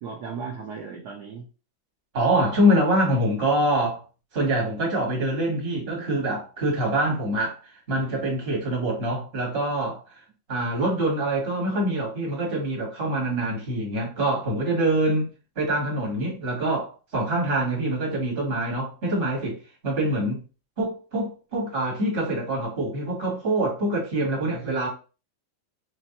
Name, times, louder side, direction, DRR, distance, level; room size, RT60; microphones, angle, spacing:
voice 1, 0.0-1.5 24.8-24.9, right 5 dB, 65° right, 1.2 m, -36 dB
voice 2, 2.1-4.0 4.3-10.0 10.5-15.3 15.5-20.4 20.8-24.9, right 1 dB, 30° right, 1.6 m, -25 dB
4.2 x 3.1 x 2.8 m
omnidirectional pair, 2.1 m